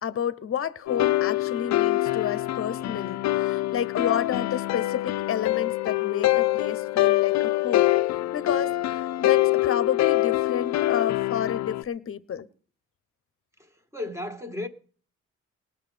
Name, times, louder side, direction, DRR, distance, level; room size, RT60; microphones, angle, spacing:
voice 1, 0.0-7.9 8.3-12.5, left 8 dB, 45° left, 1.0 m, -31 dB
sound 1, 0.9-11.8, left 16 dB, 65° left, 0.6 m, -24 dB
voice 2, 13.6-14.7, left 2 dB, 10° right, 1.9 m, -34 dB
19.0 x 6.7 x 5.1 m
cardioid pair, 90°, 30 cm